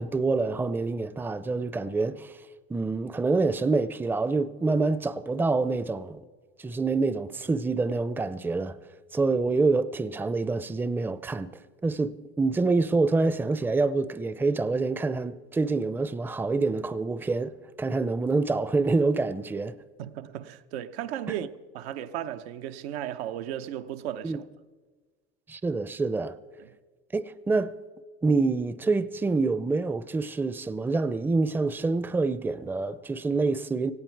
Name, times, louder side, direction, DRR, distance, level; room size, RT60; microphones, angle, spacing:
voice 1, 0.0-2.4 2.7-6.2 6.6-8.8 9.1-11.5 11.8-19.7 24.2-24.4 25.5-26.4 27.1-27.7 28.2-33.9, right 3 dB, 5° right, 0.5 m, -26 dB
voice 2, 20.0-21.5 21.7-24.4 26.6-26.7, right 11 dB, 90° right, 0.9 m, -35 dB
17.5 x 16.0 x 4.6 m
supercardioid pair, 110°, 31 cm